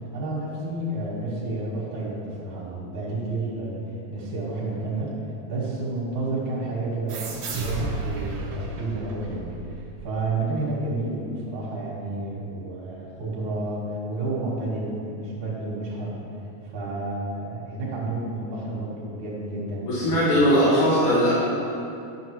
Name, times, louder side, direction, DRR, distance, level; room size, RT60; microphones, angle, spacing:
voice 1, 0.1-3.8 4.1-5.1 5.5-9.5 10.0-16.2 16.6-20.4, right 2 dB, 85° right, -5 dB, 3.0 m, -30 dB
sound 1, 7.1-10.3, right 3 dB, 70° right, 2.0 m, -33 dB
voice 2, 19.9-21.3, equal, 55° left, -11 dB, 2.5 m, -19 dB
11.5 x 6.3 x 3.0 m, 2.6 s
omnidirectional pair, 3.3 m